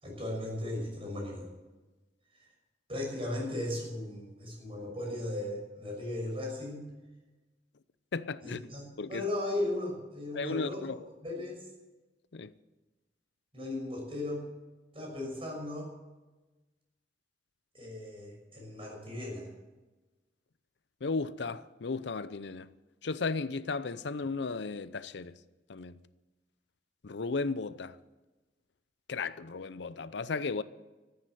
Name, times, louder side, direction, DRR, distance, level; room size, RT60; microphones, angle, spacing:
voice 1, 0.0-1.5 2.9-6.9 8.4-8.8 9.1-10.8 11.2-11.7 13.5-14.5 14.9-15.9 17.7-19.5, left 1 dB, 30° right, 6.3 m, -36 dB
voice 2, 8.1-8.6 9.0-9.2 10.3-11.0 12.3-12.5 21.0-22.7 23.0-25.3 25.7-25.9 27.0-27.9 29.1-30.6, left 4 dB, 70° left, 0.6 m, -35 dB
14.5 x 9.5 x 9.2 m
head